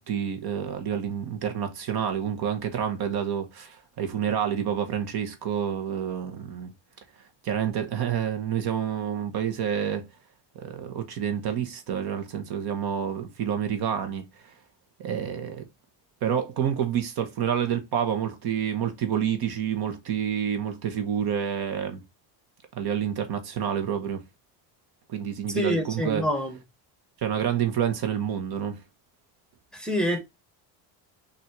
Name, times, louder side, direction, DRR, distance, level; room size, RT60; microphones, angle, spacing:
voice 1, 0.0-6.7 7.4-10.0 10.5-14.2 15.0-15.7 16.2-22.0 22.8-24.2 25.1-26.3 27.2-28.8, right 8 dB, 55° right, 1.1 m, -28 dB
voice 2, 25.5-26.5 29.7-30.2, equal, ahead, 1.1 m, -26 dB
4.1 x 2.7 x 4.5 m
cardioid pair, 120°, 46 cm